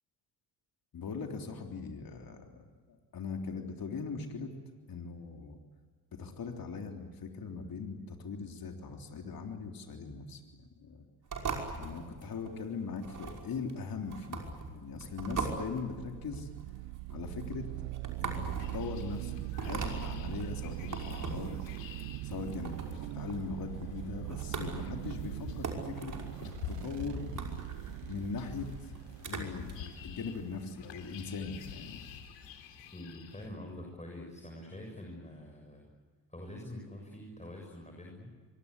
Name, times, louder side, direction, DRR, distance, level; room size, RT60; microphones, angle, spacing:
voice 1, 0.9-2.6 3.1-4.5 4.9-5.6 6.1-11.0 11.7-16.5 17.1-17.7 18.2-21.5 22.2-22.7 23.1-26.2 26.7-27.3 28.1-28.9 29.3-32.0, left 5 dB, 45° left, 3 dB, 3.5 m, -40 dB
sound 1, 11.3-29.7, right 4 dB, 40° right, 5.7 m, -41 dB
sound 2, 14.6-31.8, right 20 dB, 65° right, 0.8 m, -42 dB
sound 3, 18.6-33.5, left 7 dB, 65° left, 3.5 m, -48 dB
voice 2, 32.9-35.9 36.3-38.3, left 1 dB, 15° left, 1 dB, 7.0 m, -45 dB
25.5 x 23.5 x 8.3 m, 1.5 s
hypercardioid pair, 55°, 47 cm